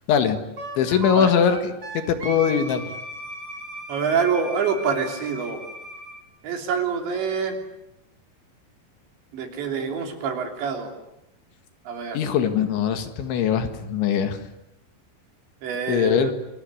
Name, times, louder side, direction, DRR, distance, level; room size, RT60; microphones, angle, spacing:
voice 1, 0.1-0.4 0.8-2.8 12.1-14.4 15.9-16.3, left 8 dB, 70° left, 8 dB, 4.0 m, -21 dB
Wind instrument woodwind instrument, 0.6-6.2, right 1 dB, 30° right, 4.0 m, -36 dB
voice 2, 3.9-5.6 6.4-7.6 9.3-10.9 11.9-12.2 15.6-16.3, right 6 dB, 65° right, 4 dB, 5.3 m, -26 dB
28.5 x 21.0 x 9.8 m, 0.85 s
omnidirectional pair, 5.8 m